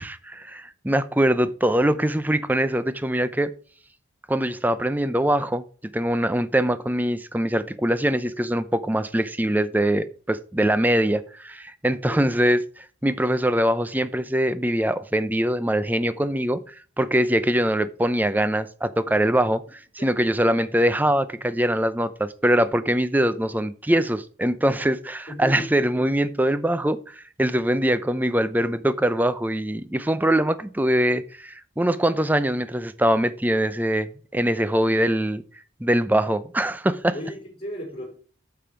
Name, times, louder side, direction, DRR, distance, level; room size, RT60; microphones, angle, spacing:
voice 1, 0.0-3.5 4.3-5.6 5.9-35.4 35.8-37.1, right 1 dB, 10° right, 0.5 m, -23 dB
voice 2, 11.9-12.4 20.0-20.3 25.3-26.1 37.1-38.2, equal, 25° left, 3.8 m, -36 dB
8.9 x 7.0 x 4.5 m
head